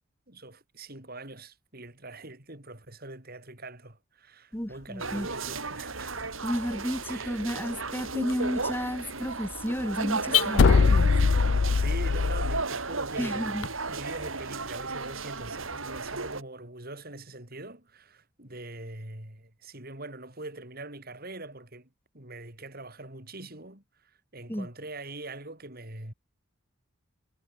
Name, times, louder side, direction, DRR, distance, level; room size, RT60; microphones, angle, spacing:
voice 1, 0.3-6.4 7.0-7.5 11.5-21.9 22.1-26.1, right 2 dB, 45° right, 5.2 m, -43 dB
Car / Alarm, 4.5-13.7, left 12 dB, 85° left, 6.4 m, -38 dB
voice 2, 4.5-5.3 6.4-11.1 13.2-13.7 24.5-24.7, equal, 10° left, 4.4 m, -32 dB
sound 1, 5.0-16.4, right 3 dB, 75° right, 5.3 m, -34 dB
sound 2, 10.6-12.6, left 5 dB, 60° left, 0.5 m, -21 dB
head